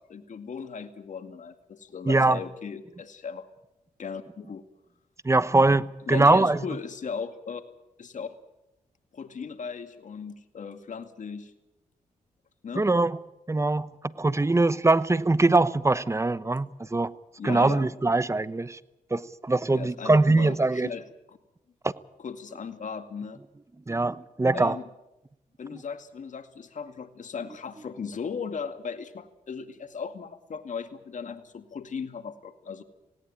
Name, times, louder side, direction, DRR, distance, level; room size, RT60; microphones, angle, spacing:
voice 1, 0.0-3.5 4.0-4.6 6.1-7.6 8.0-8.3 9.1-11.5 12.6-12.9 17.4-17.9 19.7-21.4 22.2-23.4 24.5-24.9 25.6-32.8, left 6 dB, 60° left, 8 dB, 2.2 m, -37 dB
voice 2, 2.1-2.4 5.2-6.6 12.8-13.2 13.5-17.1 17.4-18.8 19.1-20.9 23.9-24.8, right 2 dB, 20° right, 16 dB, 1.0 m, -22 dB
18.5 x 17.5 x 9.0 m, 0.90 s
cardioid pair, 60°, 15 cm